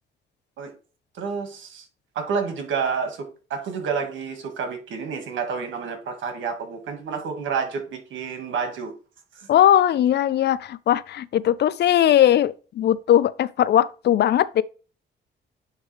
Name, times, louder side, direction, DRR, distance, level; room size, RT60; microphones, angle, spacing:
voice 1, 1.1-1.9 2.2-8.9 9.3-9.5, right 5 dB, 75° right, 1.9 m, -29 dB
voice 2, 9.5-14.6, left 11 dB, 60° left, 0.4 m, -19 dB
9.7 x 3.3 x 3.3 m
cardioid pair, 90°, 20 cm